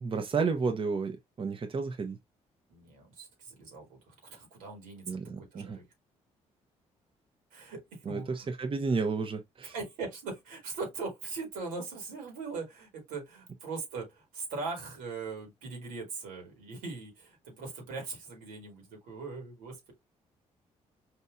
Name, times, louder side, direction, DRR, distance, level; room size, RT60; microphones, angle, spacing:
voice 1, 0.0-2.2 5.1-5.8 8.1-9.7, right 4 dB, 40° right, 0.8 m, -32 dB
voice 2, 2.7-5.8 7.5-8.5 9.6-19.9, right 4 dB, 90° right, 1.8 m, -40 dB
4.3 x 2.7 x 2.3 m
supercardioid pair, 65°, 14 cm